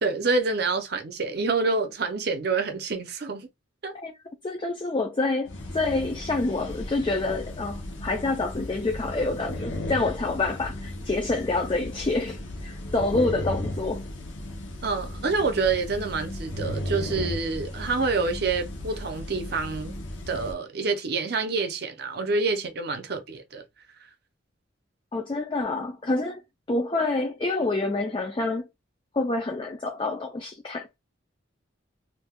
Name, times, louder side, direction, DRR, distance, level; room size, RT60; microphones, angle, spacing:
voice 1, 0.0-3.5 3.8-3.9 14.8-20.0 20.3-23.6, right 4 dB, 55° right, 0.6 m, -27 dB
voice 2, 4.4-14.1 25.1-26.4 26.7-28.7 29.1-30.9, left 2 dB, 25° left, 0.4 m, -27 dB
sound 1, 5.5-20.5, left 1 dB, 70° left, 0.8 m, -35 dB
2.6 x 2.2 x 3.5 m
head